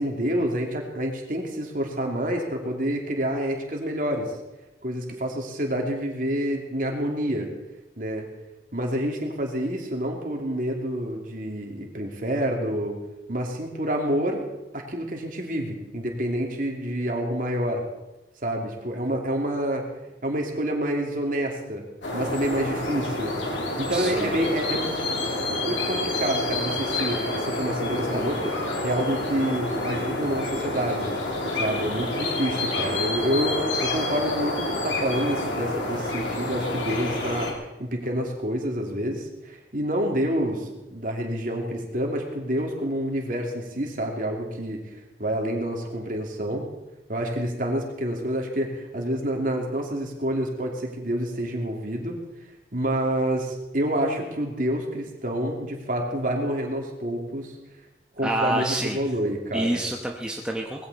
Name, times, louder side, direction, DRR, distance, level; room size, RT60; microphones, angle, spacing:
voice 1, 0.0-4.3 4.8-7.5 8.0-8.3 8.7-13.0 13.3-14.4 14.7-17.8 18.4-19.8 20.2-21.9 22.1-23.3 23.8-24.9 25.6-31.2 31.6-46.7 47.1-52.2 52.7-57.5 58.1-59.8, right 1 dB, 45° right, 1 dB, 2.7 m, -28 dB
sound 1, 22.0-37.5, left 2 dB, 90° left, 3.1 m, -28 dB
voice 2, 23.9-24.5 58.2-59.0 59.5-60.9, right 1 dB, 5° right, 0 dB, 1.0 m, -28 dB
19.5 x 15.5 x 4.2 m, 1.0 s
head